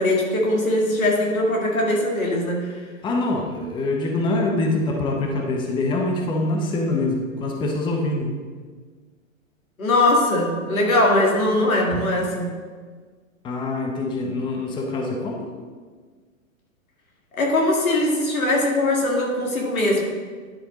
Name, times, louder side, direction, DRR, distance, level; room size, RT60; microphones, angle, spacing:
voice 1, 0.0-2.7 9.8-12.5 17.3-20.0, left 1 dB, 90° left, -1 dB, 2.1 m, -21 dB
voice 2, 3.0-8.4 11.9-12.0 13.4-15.5, left 2 dB, 10° left, 1 dB, 0.7 m, -24 dB
10.5 x 4.3 x 3.9 m, 1.5 s
hypercardioid pair, 125°, 41 cm